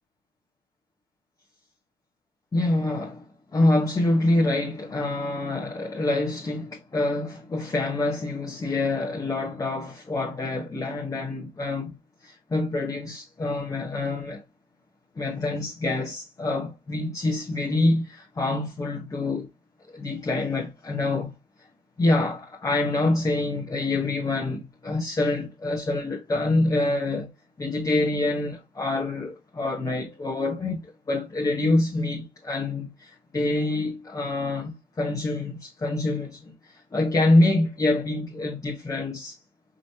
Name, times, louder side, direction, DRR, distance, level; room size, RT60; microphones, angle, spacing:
voice 1, 2.5-12.0 12.2-14.4 15.2-19.5 19.9-21.3 22.0-27.3 27.6-39.4, left 2 dB, 20° left, 0.9 m, -26 dB
4.9 x 2.9 x 2.7 m
cardioid pair, 110°, 17 cm